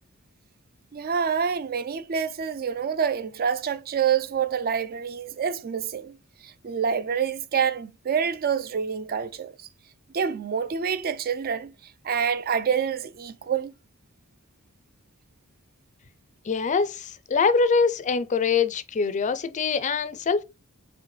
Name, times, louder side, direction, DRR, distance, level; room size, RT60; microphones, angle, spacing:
voice 1, 0.9-9.5 10.1-13.7, right 7 dB, 45° right, 0.4 m, -27 dB
voice 2, 16.5-20.4, left 5 dB, 35° left, 0.4 m, -24 dB
5.0 x 3.2 x 3.1 m
head